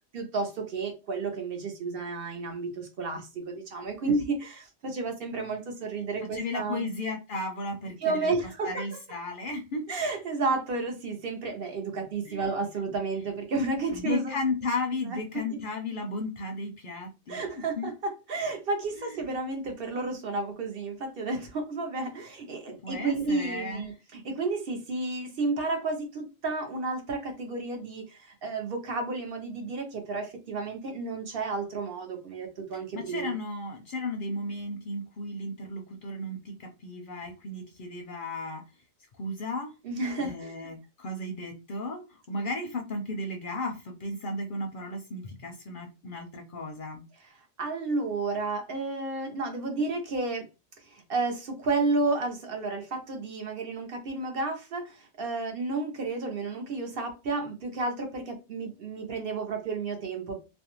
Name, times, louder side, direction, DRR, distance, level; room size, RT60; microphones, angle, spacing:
voice 1, 0.1-6.9 8.0-9.0 9.9-14.4 15.0-15.6 17.3-33.4 39.8-40.8 47.2-47.3 47.6-50.5 50.8-60.4, right 3 dB, 60° right, 0.8 m, -32 dB
voice 2, 6.3-8.3 8.6-9.9 12.3-12.4 13.9-17.9 19.0-19.2 22.8-23.9 32.9-38.6 39.2-39.7 40.2-47.0, left 2 dB, 60° left, 0.6 m, -34 dB
2.5 x 2.1 x 2.9 m
omnidirectional pair, 1.2 m